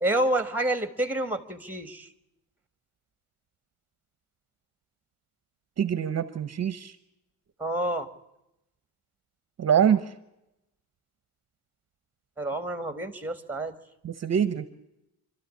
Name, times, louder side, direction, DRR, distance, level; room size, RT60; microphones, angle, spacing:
voice 1, 0.0-2.1 7.6-8.1 12.4-13.7, right 1 dB, 5° right, 10 dB, 1.5 m, -28 dB
voice 2, 5.8-7.0 9.6-10.1 14.0-14.7, right 8 dB, 40° right, 13 dB, 0.8 m, -24 dB
26.5 x 13.0 x 8.3 m, 0.90 s
cardioid pair, 165°, 41 cm